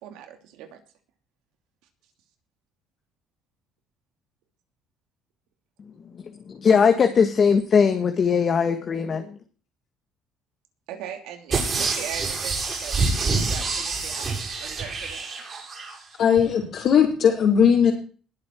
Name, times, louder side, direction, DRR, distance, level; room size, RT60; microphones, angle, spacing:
voice 1, 0.0-0.8 10.9-13.0 13.4-14.3 14.6-15.2, right 9 dB, 85° right, 6 dB, 2.9 m, -39 dB
voice 2, 5.8-9.4, left 6 dB, 40° left, 6 dB, 1.6 m, -21 dB
sound 1, 11.5-15.9 16.4-16.5, right 4 dB, 30° right, 7.1 m, -27 dB
voice 3, 16.2-17.9, left 7 dB, 55° left, -4 dB, 4.0 m, -18 dB
21.0 x 7.7 x 4.6 m, 0.40 s
cardioid pair, 115°, 0 cm